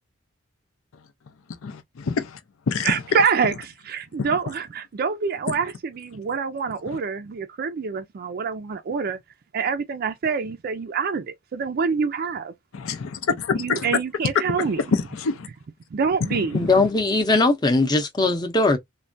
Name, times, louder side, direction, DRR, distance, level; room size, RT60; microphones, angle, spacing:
voice 1, 1.6-2.4 2.7-2.9 4.2-4.3 12.7-14.0 14.6-15.5 16.3-16.7, left 5 dB, 85° left, 0.5 m, -26 dB
voice 2, 2.8-4.7 5.0-9.2 9.5-12.5 13.6-14.8 15.9-16.6, right 5 dB, 50° right, 0.4 m, -26 dB
voice 3, 16.5-18.8, left 2 dB, 20° left, 0.6 m, -20 dB
3.2 x 2.2 x 2.5 m
head